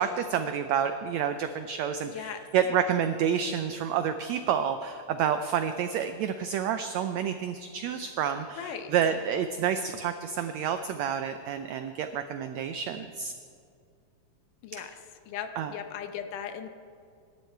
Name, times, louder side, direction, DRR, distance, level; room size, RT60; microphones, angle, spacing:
voice 1, 0.0-13.3 14.7-14.9 15.6-15.7, right 8 dB, 85° right, 8 dB, 1.5 m, -29 dB
voice 2, 2.1-2.4 8.6-9.0 14.6-15.0 15.3-16.7, left 8 dB, 75° left, 8 dB, 2.4 m, -38 dB
25.0 x 12.5 x 4.5 m, 2.4 s
omnidirectional pair, 3.9 m